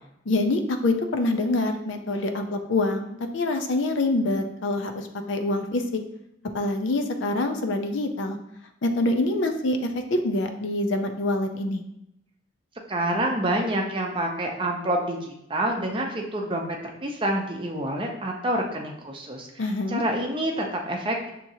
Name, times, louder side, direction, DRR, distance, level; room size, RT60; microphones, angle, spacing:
voice 1, 0.3-5.8 6.5-8.4 8.8-11.8 19.6-20.0, left 2 dB, 65° left, 6 dB, 0.5 m, -25 dB
voice 2, 12.9-19.5 19.9-21.3, right 1 dB, 25° right, 1 dB, 0.6 m, -27 dB
6.1 x 2.9 x 2.7 m, 0.79 s
head